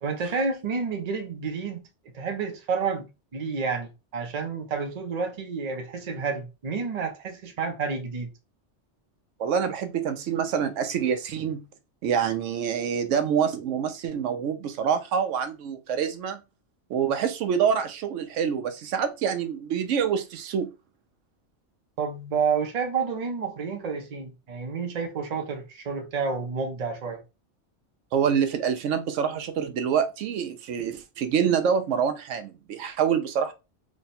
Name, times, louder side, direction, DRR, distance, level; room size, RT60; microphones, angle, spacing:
voice 1, 0.0-1.9 2.1-8.3 22.0-27.2, right 5 dB, 40° right, 0.6 m, -30 dB
voice 2, 9.4-11.6 12.0-16.4 16.9-20.7 28.1-33.5, right 7 dB, 90° right, 0.9 m, -26 dB
3.2 x 2.2 x 4.0 m
omnidirectional pair, 1.2 m